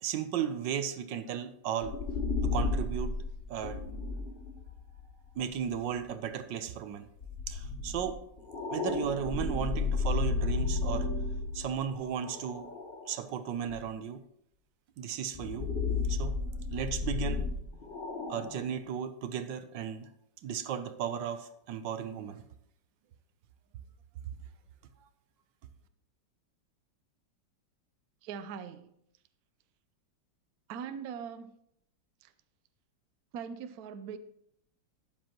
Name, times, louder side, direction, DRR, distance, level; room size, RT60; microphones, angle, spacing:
voice 1, 0.0-1.9 2.4-3.1 3.5-3.8 5.3-7.1 7.5-8.2 8.7-11.1 11.5-12.7 13.1-14.2 15.0-15.7 16.1-16.3 16.7-17.5 18.3-20.1 20.4-22.4, right 8 dB, 80° right, 1.4 m, -35 dB
sound 1, 1.8-6.0 7.2-13.2 13.7-13.8 15.3-18.8, left 4 dB, 35° left, 1.1 m, -33 dB
voice 2, 28.2-29.0 30.7-31.5 32.2-32.3 33.3-34.2, right 7 dB, 65° right, 1.0 m, -41 dB
12.5 x 9.2 x 3.0 m
omnidirectional pair, 2.0 m